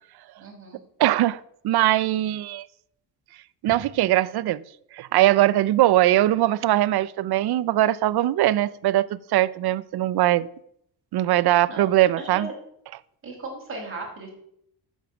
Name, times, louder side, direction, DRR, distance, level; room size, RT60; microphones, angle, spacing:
voice 1, 0.4-0.8 11.7-11.9 12.2-12.4 13.2-14.3, right 3 dB, 30° right, 5.0 m, -37 dB
voice 2, 1.0-2.7 3.6-4.6 4.9-10.5 11.1-12.5, right 14 dB, 65° right, 0.6 m, -21 dB
12.0 x 7.3 x 7.3 m
cardioid pair, 135°, 41 cm